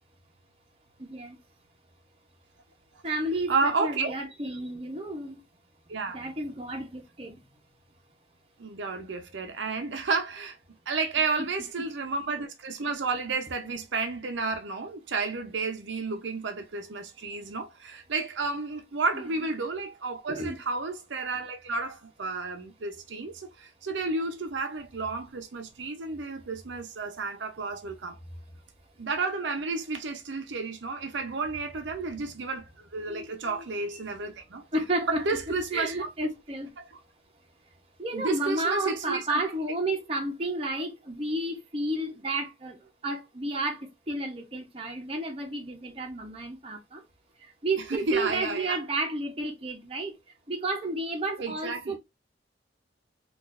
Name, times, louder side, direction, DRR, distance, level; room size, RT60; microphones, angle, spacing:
voice 1, 1.0-1.4 3.0-5.4 6.1-7.4 11.2-11.3 19.1-19.3 20.3-20.6 33.1-33.8 34.7-35.2 35.7-36.7 38.0-42.8 43.0-47.0 47.6-50.1 50.5-52.0, right 2 dB, 30° right, 0.8 m, -32 dB
voice 2, 3.5-4.2 5.9-6.2 8.6-10.6 10.9-28.2 29.0-34.6 35.1-36.1 38.1-39.4 48.1-48.8 51.4-52.0, right 4 dB, 80° right, 0.6 m, -31 dB
3.9 x 2.5 x 2.5 m
head